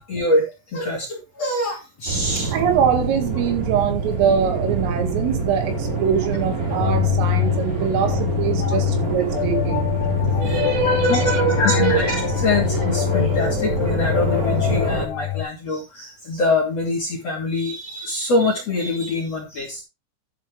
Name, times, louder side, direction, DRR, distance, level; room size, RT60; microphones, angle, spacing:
voice 1, 0.1-2.5 8.6-8.8 9.6-9.7 10.5-10.6 11.1-11.2 11.6-19.8, left 2 dB, 40° left, 2.6 m, -24 dB
sound 1, 2.1-15.1, right 3 dB, 20° right, 2.7 m, -26 dB
voice 2, 2.5-9.9 10.4-12.0 12.5-12.7, right 7 dB, 75° right, 4.6 m, -23 dB
sound 2, 6.7-15.4, left 15 dB, 80° left, 3.6 m, -24 dB
sound 3, 7.5-13.0, right 6 dB, 50° right, 3.5 m, -41 dB
11.0 x 8.8 x 3.4 m
omnidirectional pair, 5.9 m